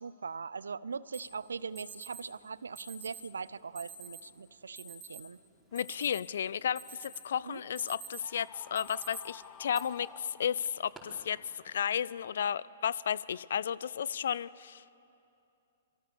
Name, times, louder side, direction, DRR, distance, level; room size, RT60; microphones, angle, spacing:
voice 1, 0.0-5.4 7.4-7.6, right 5 dB, 70° right, 20 dB, 0.6 m, -41 dB
Alarm, 1.1-1.2 1.8-2.2 2.8-3.2 3.8-4.2 4.8-5.2 5.6-6.4 6.8-7.3 7.6-8.3 8.8-9.2 9.7-9.8 10.6-11.0, right 5 dB, 10° right, 4.8 m, -47 dB
voice 2, 5.7-14.8, left 8 dB, 60° left, 21 dB, 0.5 m, -33 dB
Screaming, 8.2-10.9, left 7 dB, 20° left, 1.2 m, -52 dB
27.0 x 23.5 x 6.8 m, 2.7 s
figure-of-eight pair, 110°, 0 cm